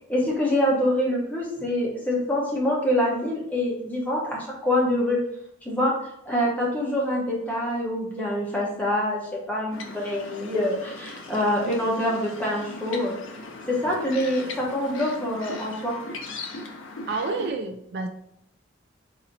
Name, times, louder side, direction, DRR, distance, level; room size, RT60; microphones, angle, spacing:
voice 1, 0.1-5.2 5.6-5.9 6.3-13.1 13.7-15.9, left 1 dB, 5° left, -4 dB, 0.9 m, -25 dB
sound 1, 9.7-17.5, left 3 dB, 70° left, 0.6 m, -39 dB
voice 2, 17.1-18.1, right 3 dB, 55° right, 6 dB, 0.3 m, -29 dB
4.0 x 2.7 x 4.0 m, 0.75 s
head